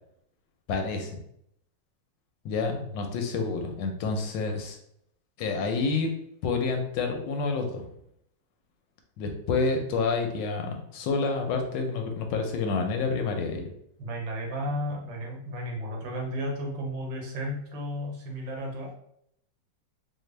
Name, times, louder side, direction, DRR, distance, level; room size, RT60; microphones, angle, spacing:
voice 1, 0.7-1.2 2.4-4.8 5.4-6.1 6.4-7.9 9.2-13.7, left 4 dB, 80° left, 3 dB, 1.3 m, -28 dB
voice 2, 14.0-18.9, equal, 90° right, -1 dB, 1.6 m, -33 dB
4.2 x 2.1 x 3.2 m, 0.73 s
omnidirectional pair, 2.0 m